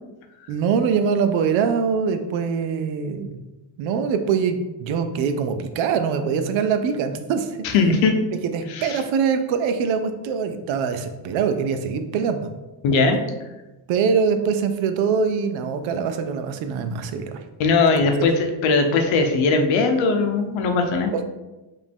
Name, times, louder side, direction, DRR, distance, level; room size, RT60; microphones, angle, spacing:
voice 1, 0.5-3.5 3.8-7.6 8.4-12.5 13.9-17.4 21.1-21.2, right 6 dB, 80° right, 8 dB, 0.6 m, -23 dB
voice 2, 7.6-8.2 8.8-9.0 12.8-13.2 17.6-21.1, left 4 dB, 80° left, 5 dB, 0.8 m, -19 dB
5.0 x 2.7 x 3.5 m, 1.1 s
cardioid pair, 130°, 46 cm